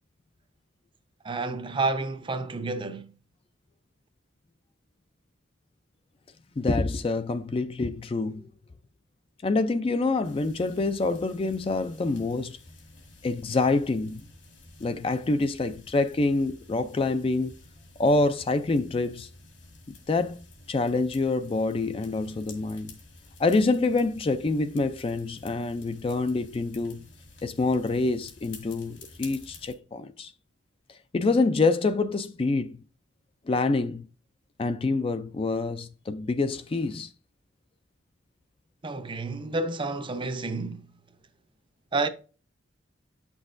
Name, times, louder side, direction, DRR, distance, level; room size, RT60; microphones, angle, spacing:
voice 1, 1.2-3.1 38.8-40.9 41.9-42.1, right 3 dB, 25° right, 0.6 m, -30 dB
voice 2, 6.6-8.5 9.4-12.6 13.2-14.2 14.8-17.5 18.0-19.3 20.1-22.9 23.4-27.1 27.4-30.3 31.1-32.8 33.5-34.1 34.6-37.1, left 3 dB, 30° left, 0.3 m, -26 dB
sound 1, 10.2-29.7, left 3 dB, 65° left, 1.9 m, -51 dB
8.7 x 6.1 x 2.5 m
head